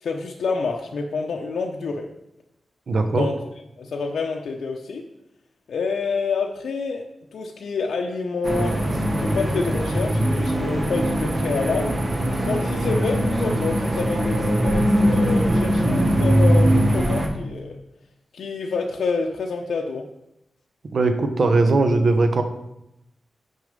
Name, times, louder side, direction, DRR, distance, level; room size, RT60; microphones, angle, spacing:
voice 1, 0.0-2.1 3.1-3.4 3.8-5.0 5.7-7.0 7.3-8.8 9.1-11.9 12.4-17.8 18.3-20.1, left 4 dB, 85° left, 1 dB, 0.6 m, -27 dB
voice 2, 2.9-3.3 20.9-22.4, right 3 dB, 60° right, 7 dB, 0.8 m, -19 dB
sound 1, 8.4-17.3, equal, 35° right, 1.1 m, -21 dB
6.4 x 5.3 x 5.2 m, 0.86 s
wide cardioid pair, 105°, 0 cm